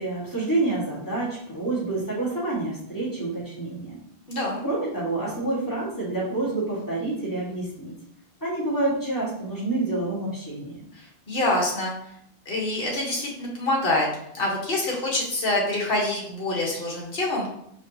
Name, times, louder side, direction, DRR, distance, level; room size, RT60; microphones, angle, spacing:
voice 1, 0.0-4.0 4.6-7.9 8.4-10.8, right 2 dB, 20° left, -7 dB, 1.5 m, -28 dB
voice 2, 4.3-4.6 11.3-11.9 12.5-14.1 14.3-17.5, left 2 dB, 55° left, -2 dB, 1.3 m, -25 dB
5.0 x 2.8 x 2.7 m, 0.72 s
omnidirectional pair, 1.1 m